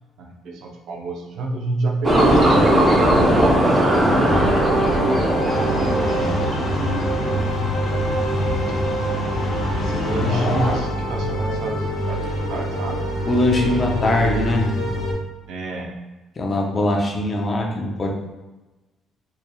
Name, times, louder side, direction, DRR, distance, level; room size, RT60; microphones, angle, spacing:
voice 1, 0.2-2.8 3.8-4.8 5.8-6.5 6.8-7.6 9.6-13.1 15.5-16.0, right 2 dB, 65° right, 1 dB, 0.7 m, -29 dB
sound 1, 2.0-7.4, right 1 dB, 20° right, 0.7 m, -18 dB
sound 2, 4.3-15.1, right 1 dB, 75° left, 1.2 m, -25 dB
sound 3, 5.5-10.8, left 2 dB, 55° left, 0.8 m, -27 dB
voice 2, 13.3-14.8 16.4-18.1, left 1 dB, 25° left, 0 dB, 0.6 m, -21 dB
4.3 x 3.3 x 2.3 m, 1.1 s
cardioid pair, 170°, 0 cm